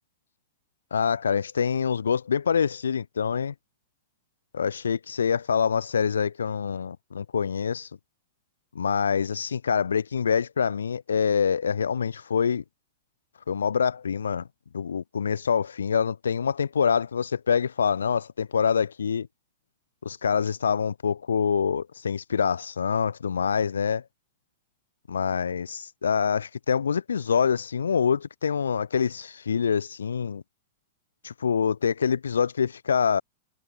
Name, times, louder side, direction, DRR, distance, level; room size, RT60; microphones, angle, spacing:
voice 1, 0.9-3.5 4.5-7.9 8.7-12.6 13.5-14.5 14.7-19.3 20.0-24.0 25.1-30.4 31.2-33.2, left 6 dB, 85° left, 6.1 m, -25 dB
hypercardioid pair, 115°, 0 cm